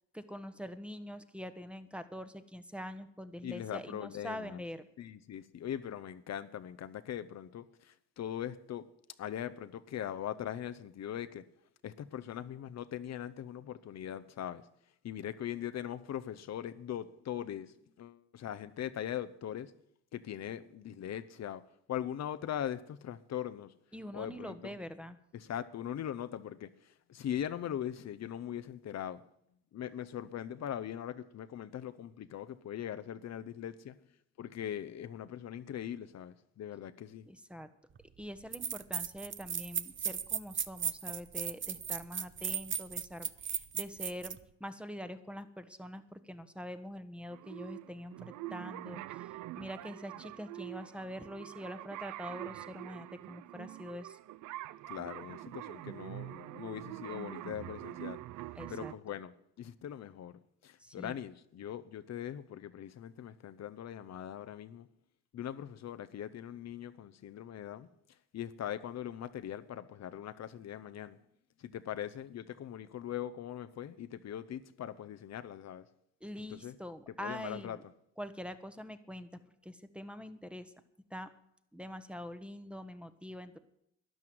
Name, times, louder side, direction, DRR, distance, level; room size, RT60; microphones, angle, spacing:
voice 1, 0.1-4.9 23.9-25.2 37.3-37.7 38.2-54.2 58.6-58.9 60.8-61.2 76.2-77.8 78.2-79.3 79.6-80.7 81.1-81.3 81.7-83.6, equal, 5° right, 11 dB, 1.2 m, -44 dB
voice 2, 3.4-4.6 5.0-8.9 9.2-11.4 11.8-14.6 15.0-19.7 20.1-21.6 21.9-23.7 24.1-24.7 25.3-26.7 27.1-29.2 29.7-34.0 34.4-37.3 54.9-58.2 58.7-64.9 65.3-67.9 68.3-71.2 71.6-75.8 76.5-76.7 77.2-77.8, left 10 dB, 60° left, 11 dB, 0.9 m, -41 dB
sound 1, 38.0-38.1 38.5-44.4, right 8 dB, 40° right, 0.8 m, -36 dB
sound 2, 47.3-58.9, right 16 dB, 75° right, 0.5 m, -45 dB
12.5 x 10.5 x 7.8 m, 0.75 s
cardioid pair, 90°, 30 cm